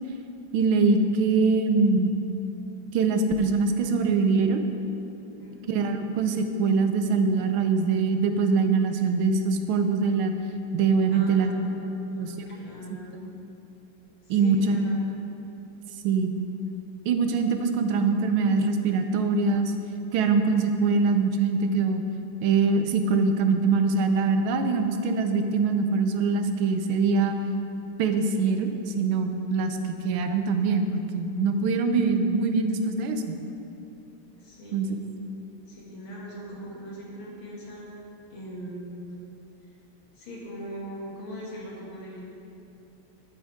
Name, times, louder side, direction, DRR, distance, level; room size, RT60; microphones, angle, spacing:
voice 1, 0.5-2.1 2.9-4.6 5.7-10.3 10.7-11.5 12.2-12.3 14.3-14.8 16.0-16.4 17.1-19.7 20.1-22.0 22.4-27.4 28.0-28.7 29.0-33.2 34.7-34.9, right 4 dB, 90° right, 6 dB, 1.6 m, -23 dB
voice 2, 5.3-5.9 11.1-13.3 14.2-15.2 34.4-35.0 35.7-37.9 38.3-39.0 40.1-42.2, equal, 90° left, -5 dB, 2.9 m, -41 dB
11.5 x 9.2 x 3.6 m, 2.8 s
omnidirectional pair, 2.2 m